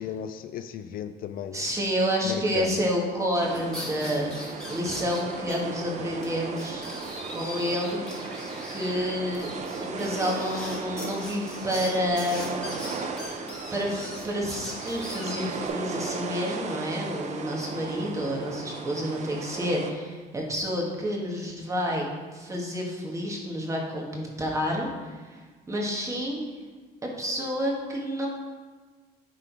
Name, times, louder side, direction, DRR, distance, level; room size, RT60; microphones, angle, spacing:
voice 1, 0.0-1.6 2.2-2.7, left 9 dB, 60° left, 10 dB, 0.4 m, -34 dB
voice 2, 1.5-6.9 7.3-8.1 8.7-9.5 9.8-12.7 13.7-22.1 22.3-26.4 27.0-28.3, equal, 20° right, -2 dB, 1.7 m, -29 dB
sound 1, 3.4-19.9, right 4 dB, 45° right, 0.7 m, -36 dB
sound 2, 3.5-5.5 5.8-5.9 6.2-6.3 6.6-15.7, left 1 dB, 5° left, 2.1 m, -41 dB
9.9 x 3.8 x 4.8 m, 1.4 s
cardioid pair, 110°, 17 cm